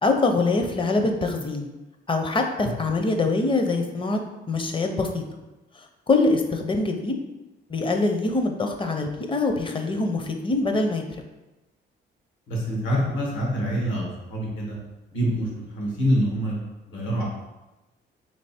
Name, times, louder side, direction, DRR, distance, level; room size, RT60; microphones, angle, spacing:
voice 1, 0.0-1.7 2.1-4.2 4.5-5.2 6.1-7.1 7.7-11.0, left 3 dB, 25° left, 4 dB, 0.6 m, -24 dB
voice 2, 12.5-14.8 15.1-16.6 16.9-17.2, equal, 80° left, -3 dB, 1.5 m, -26 dB
3.3 x 3.0 x 4.2 m, 1.0 s
cardioid pair, 90°, 20 cm